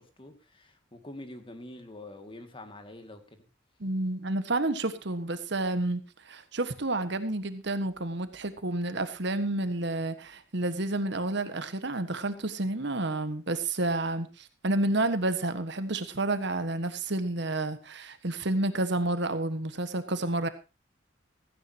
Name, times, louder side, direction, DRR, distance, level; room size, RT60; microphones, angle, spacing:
voice 1, 0.0-3.4, left 1 dB, 25° left, 2.1 m, -46 dB
voice 2, 3.8-20.5, right 2 dB, 65° right, 1.5 m, -30 dB
16.0 x 15.5 x 2.9 m
head